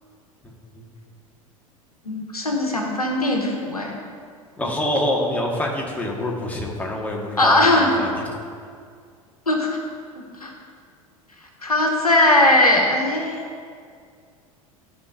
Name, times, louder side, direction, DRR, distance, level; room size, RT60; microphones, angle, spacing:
voice 1, 0.4-0.9 4.6-8.1, left 1 dB, 10° left, -2 dB, 1.6 m, -26 dB
voice 2, 2.0-3.9 7.4-7.9 9.5-9.7 10.4-10.5 11.6-13.4, left 1 dB, 85° left, 1 dB, 1.2 m, -19 dB
13.5 x 6.0 x 2.7 m, 2.1 s
figure-of-eight pair, 80°, 18 cm